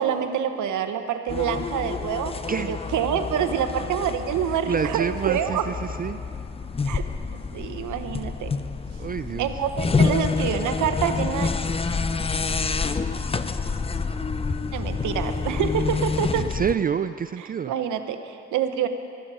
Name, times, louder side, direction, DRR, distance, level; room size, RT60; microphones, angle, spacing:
voice 1, 0.0-2.3 2.7-5.6 6.8-7.0 7.5-8.5 9.4-11.5 14.7-16.4 17.7-18.9, right 8 dB, 75° right, 8 dB, 1.1 m, -26 dB
sound 1, 1.3-16.8, left 4 dB, 20° left, 0.6 m, -28 dB
voice 2, 4.5-6.2 9.0-9.6 16.3-17.7, right 7 dB, 30° right, 12 dB, 0.4 m, -28 dB
18.5 x 13.5 x 5.0 m, 2.5 s
cardioid pair, 90°, 30 cm